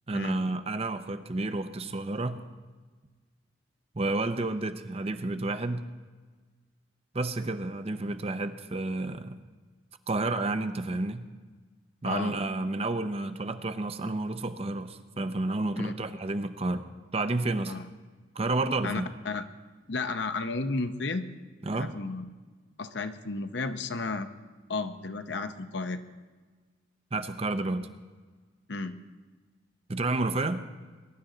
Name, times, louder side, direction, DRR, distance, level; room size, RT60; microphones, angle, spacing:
voice 1, 0.1-2.4 3.9-5.9 7.1-9.4 10.1-11.3 12.0-16.8 17.1-17.8 18.3-19.1 21.6-21.9 27.1-27.9 29.9-30.6, right 2 dB, 30° right, 10 dB, 0.6 m, -30 dB
voice 2, 18.8-19.4 19.9-21.2 21.7-22.2 22.8-24.3 24.7-26.0 28.7-29.0, left 3 dB, 60° left, 9 dB, 0.8 m, -33 dB
21.5 x 11.0 x 3.9 m, 1.4 s
head